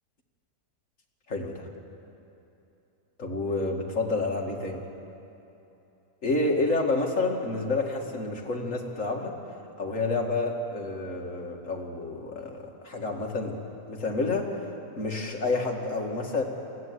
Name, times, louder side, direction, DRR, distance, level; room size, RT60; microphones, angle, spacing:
voice 1, 1.3-1.7 3.2-4.8 6.2-9.4 9.8-13.6 13.9-14.6 15.0-16.4, left 3 dB, 50° left, 0 dB, 2.4 m, -29 dB
21.0 x 15.0 x 9.6 m, 2.9 s
omnidirectional pair, 1.7 m